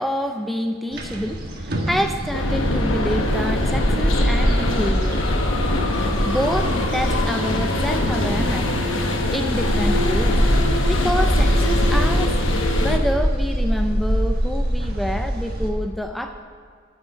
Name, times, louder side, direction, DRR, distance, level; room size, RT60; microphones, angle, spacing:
voice 1, 0.0-5.2 6.2-10.4 10.8-12.4 12.7-16.4, equal, ahead, 5 dB, 0.3 m, -27 dB
sound 1, 0.9-15.7, equal, 45° right, 1.5 m, -23 dB
sound 2, 2.3-13.0, left 1 dB, 65° left, 1.1 m, -23 dB
9.7 x 6.5 x 8.3 m, 2.1 s
head